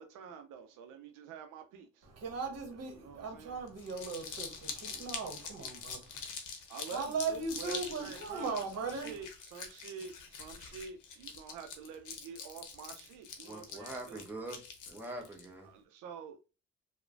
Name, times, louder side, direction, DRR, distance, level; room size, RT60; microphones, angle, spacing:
voice 1, 0.0-2.1 2.9-3.6 6.7-14.2 15.6-16.4, right 6 dB, 85° right, 0.5 m, -48 dB
voice 2, 2.1-6.2 6.9-9.1, right 4 dB, 55° right, 1.0 m, -38 dB
Crumpling crinkling, 3.7-15.5, left 6 dB, 80° left, 0.7 m, -45 dB
voice 3, 13.4-15.7, right 1 dB, 5° right, 0.7 m, -44 dB
3.0 x 2.1 x 2.5 m
cardioid pair, 90°, 30 cm